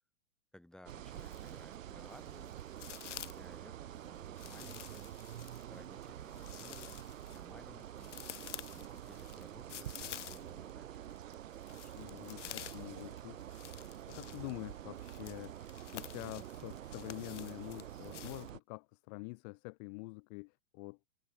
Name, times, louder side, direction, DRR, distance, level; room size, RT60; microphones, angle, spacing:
voice 1, 0.5-2.6 3.3-5.2 5.7-8.1 8.7-11.0 11.7-12.4, left 1 dB, ahead, 1.8 m, -58 dB
sound 1, 0.9-1.7 2.1-3.5 4.4-10.7 11.0-18.5, left 12 dB, 60° left, 2.4 m, -50 dB
sound 2, 0.9-18.6, right 11 dB, 70° right, 0.9 m, -47 dB
voice 2, 12.0-13.4 14.1-15.6 15.9-21.0, left 30 dB, 30° left, 0.6 m, -46 dB
figure-of-eight pair, 110°, 41 cm